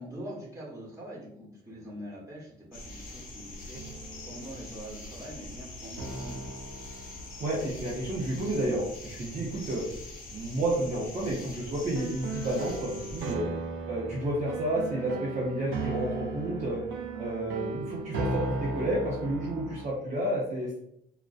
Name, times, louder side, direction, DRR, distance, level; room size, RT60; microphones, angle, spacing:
voice 1, 0.0-4.0 4.2-6.5, equal, 15° right, -6 dB, 1.1 m, -43 dB
sound 1, 1.7-1.8 3.7-4.8 6.0-9.3 12.0-19.9, right 3 dB, 80° right, 0.5 m, -37 dB
sound 2, 2.7-13.3, left 2 dB, 45° left, 0.9 m, -44 dB
voice 2, 7.4-9.8 10.3-13.5 13.9-16.8 17.2-20.8, right 1 dB, 40° right, -5 dB, 0.6 m, -31 dB
2.4 x 2.1 x 2.4 m, 0.75 s
cardioid pair, 90°, 20 cm